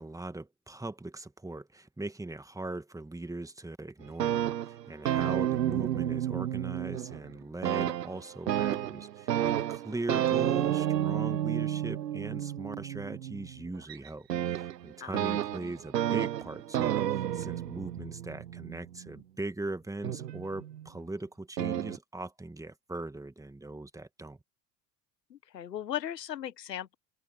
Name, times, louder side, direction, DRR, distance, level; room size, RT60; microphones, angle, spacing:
voice 1, 0.0-24.4, right 2 dB, 5° right, 2.1 m, -40 dB
sound 1, 4.0-7.3 7.6-19.2 20.0-20.9 21.6-22.0, right 11 dB, 80° right, 1.1 m, -31 dB
voice 2, 25.3-26.9, left 10 dB, 80° left, 1.4 m, -37 dB
open air
figure-of-eight pair, 70°, 49 cm